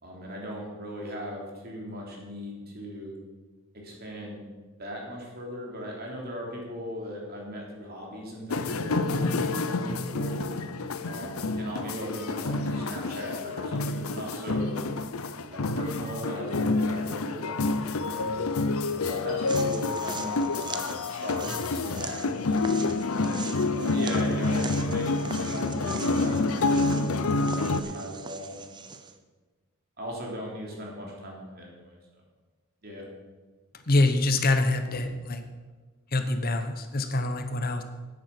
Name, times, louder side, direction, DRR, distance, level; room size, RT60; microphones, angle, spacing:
voice 1, 0.0-3.1 3.7-4.4 4.8-10.4 11.0-14.8 15.5-18.4 18.9-22.8 23.7-27.2 27.5-28.9 30.0-32.0 32.8-33.0, equal, 45° right, -1 dB, 3.1 m, -38 dB
sound 1, 8.5-27.8, left 3 dB, 70° left, 0.7 m, -28 dB
sound 2, 19.5-29.2, right 4 dB, 20° right, 0.6 m, -41 dB
voice 2, 33.9-35.4 36.1-37.8, left 2 dB, 40° left, 8 dB, 0.9 m, -25 dB
10.5 x 9.5 x 5.9 m, 1.3 s
head